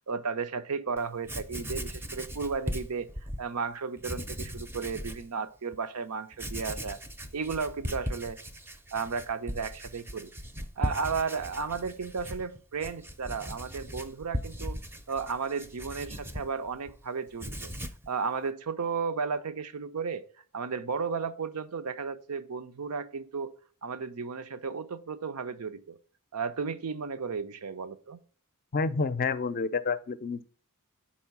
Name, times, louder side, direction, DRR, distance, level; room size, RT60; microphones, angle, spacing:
voice 1, 0.1-3.1 3.4-7.0 7.3-8.4 8.9-10.3 10.8-14.8 15.1-17.7 18.1-20.2 20.5-23.5 23.8-26.0 26.3-28.2, right 5 dB, 85° right, 0.6 m, -34 dB
Writing, 1.0-3.4 4.0-5.3 5.7-5.8 6.3-17.0 17.3-18.1, equal, 10° right, 0.5 m, -38 dB
voice 2, 28.7-30.4, left 4 dB, 40° left, 0.4 m, -29 dB
5.4 x 4.2 x 5.8 m
head